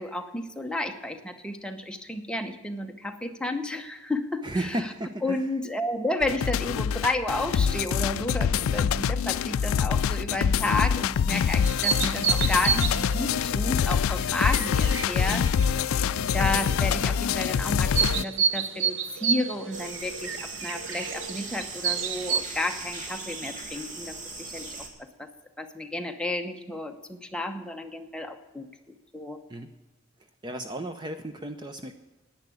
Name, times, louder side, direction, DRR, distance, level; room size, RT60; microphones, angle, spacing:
voice 1, 0.0-4.9 5.2-15.9 16.3-24.9 25.2-25.3 25.6-28.7 29.1-29.4, left 2 dB, 5° left, 5 dB, 0.8 m, -32 dB
voice 2, 4.4-5.5 29.5-29.7 30.4-31.9, right 1 dB, 20° right, 8 dB, 0.5 m, -33 dB
sound 1, 6.2-18.2, left 7 dB, 85° left, 0.3 m, -25 dB
sound 2, 11.6-22.4, right 7 dB, 65° right, 0.8 m, -31 dB
sound 3, 19.7-24.9, right 3 dB, 35° right, 1.8 m, -39 dB
10.5 x 9.5 x 8.4 m, 1.2 s
head